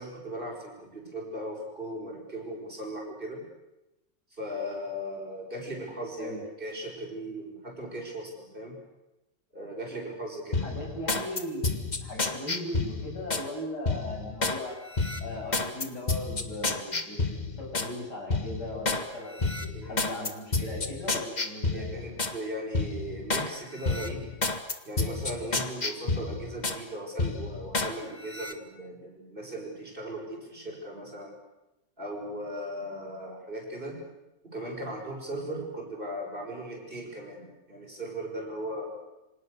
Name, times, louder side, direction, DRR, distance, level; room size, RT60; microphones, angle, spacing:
voice 1, 0.0-3.5 4.3-8.8 9.5-10.7 19.7-20.0 21.7-24.3 24.8-31.4 32.0-34.1 34.4-38.9, right 1 dB, 30° right, 0 dB, 6.4 m, -38 dB
sound 1, 10.5-13.5 13.9-14.6 14.9-17.9 18.3-19.0 19.4-22.4 22.7-23.5 23.8-26.8 27.2-27.9 28.3-28.5, left 3 dB, 25° left, 1.7 m, -30 dB
voice 2, 10.6-14.8 15.2-21.9, left 1 dB, 65° left, -1 dB, 8.1 m, -38 dB
28.5 x 26.0 x 6.8 m, 0.97 s
omnidirectional pair, 1.9 m